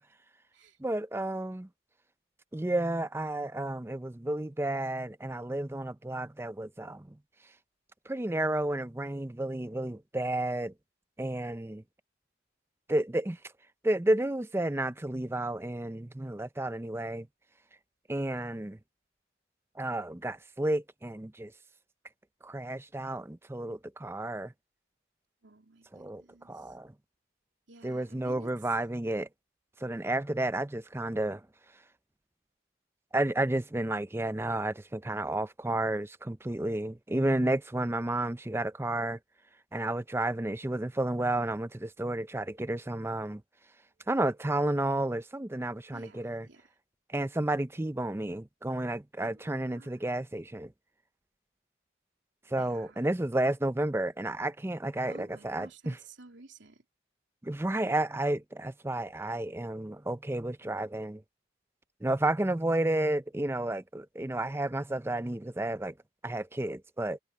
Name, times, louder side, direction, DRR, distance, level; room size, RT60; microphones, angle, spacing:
voice 1, 0.8-1.7 2.5-7.2 8.1-10.7 11.2-11.8 12.9-13.4 13.8-17.3 18.1-18.8 19.8-21.5 22.4-24.5 25.9-26.9 27.8-29.3 29.8-31.5 33.1-39.2 39.7-43.4 44.1-46.5 47.1-50.7 52.5-56.0 57.4-61.2 62.0-65.9 66.2-67.2, right 1 dB, 10° right, 0.5 m, -31 dB
voice 2, 25.4-26.7 27.7-28.5 45.9-46.7 49.2-49.9 52.6-53.0 55.1-56.8, right 3 dB, 70° right, 3.2 m, -53 dB
sound 1, 40.8-41.9 42.3-43.4 43.8-44.9 45.3-46.4, right 4 dB, 40° right, 3.7 m, -77 dB
head